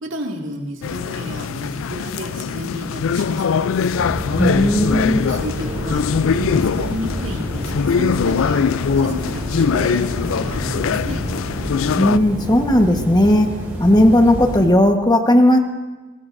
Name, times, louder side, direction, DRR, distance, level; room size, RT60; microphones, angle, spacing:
voice 1, 0.0-3.7 5.3-6.0 6.3-8.6 9.0-11.2, right 1 dB, 70° right, 1 dB, 2.2 m, -31 dB
sound 1, 0.8-12.2, left 6 dB, 85° left, 0.4 m, -22 dB
sound 2, 3.9-14.6, equal, 10° right, 5.9 m, -28 dB
voice 2, 4.4-5.2 12.0-15.6, left 1 dB, 20° left, 4 dB, 1.2 m, -15 dB
22.5 x 21.0 x 2.6 m, 1.2 s
head